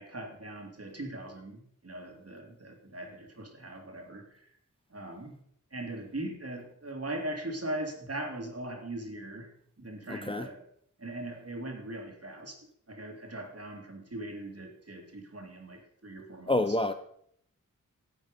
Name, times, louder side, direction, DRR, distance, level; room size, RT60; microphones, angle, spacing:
voice 1, 0.0-4.5 4.9-5.3 5.7-9.5 9.8-10.6 11.0-12.6 12.9-16.8, right 1 dB, 50° right, 2.6 m, -40 dB
voice 2, 10.1-10.4 16.5-16.9, left 2 dB, 15° left, 0.7 m, -27 dB
13.0 x 8.6 x 5.2 m
wide cardioid pair, 70°, 32 cm